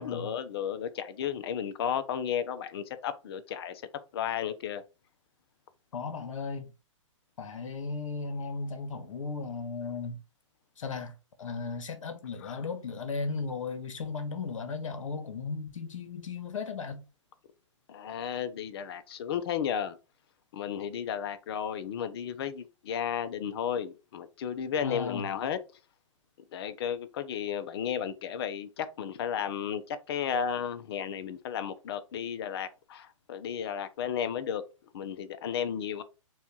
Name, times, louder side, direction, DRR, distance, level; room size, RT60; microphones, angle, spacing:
voice 1, 0.0-3.8 4.1-4.8 12.4-12.6 17.9-20.0 20.5-25.6 26.5-34.6 34.9-36.0, left 8 dB, 50° left, 0.6 m, -33 dB
voice 2, 5.9-6.7 7.4-10.2 10.8-11.1 11.4-17.0 24.8-25.3, left 4 dB, 75° left, 1.2 m, -36 dB
4.3 x 2.4 x 4.2 m
hypercardioid pair, 135°, 17 cm